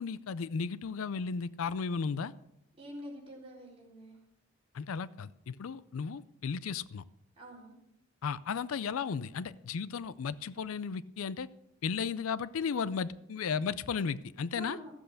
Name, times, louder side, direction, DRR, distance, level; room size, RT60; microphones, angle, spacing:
voice 1, 0.0-2.3 4.7-7.0 8.2-11.5 11.8-14.8, left 6 dB, 75° left, 18 dB, 0.4 m, -35 dB
voice 2, 2.8-4.2 7.4-7.7 14.5-14.9, equal, 25° right, -3 dB, 3.9 m, -46 dB
14.0 x 7.8 x 6.6 m, 0.82 s
head